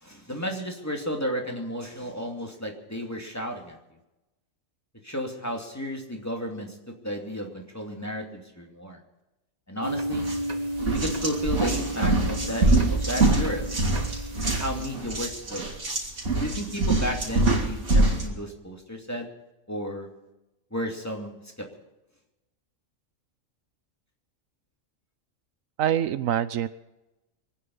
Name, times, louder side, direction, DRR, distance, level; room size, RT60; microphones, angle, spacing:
voice 1, 0.0-3.8 5.0-6.7 7.0-9.0 9.7-10.3 10.9-13.7 14.4-15.7 16.4-19.3 19.7-20.1 20.7-21.7, equal, 10° left, 1 dB, 2.6 m, -33 dB
sound 1, 9.8-14.9, equal, 30° right, 1.5 m, -33 dB
sound 2, 10.1-10.4 10.8-18.3, right 2 dB, 60° right, 3.3 m, -24 dB
voice 2, 25.8-26.7, right 10 dB, 75° right, 15 dB, 1.1 m, -25 dB
25.0 x 9.5 x 5.5 m, 0.99 s
omnidirectional pair, 1.4 m